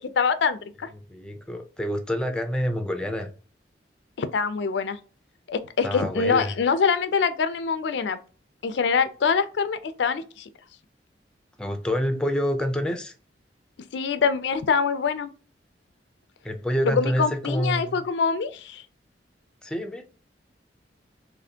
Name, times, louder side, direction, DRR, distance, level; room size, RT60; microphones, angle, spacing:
voice 1, 0.2-0.9 4.2-5.0 5.5-8.2 8.6-10.5 13.9-15.3 16.8-18.8, left 5 dB, 70° left, 0.4 m, -24 dB
voice 2, 1.1-3.3 5.8-6.5 11.6-13.1 16.4-18.0 19.6-20.0, equal, 5° left, 0.5 m, -27 dB
4.1 x 3.1 x 2.7 m
head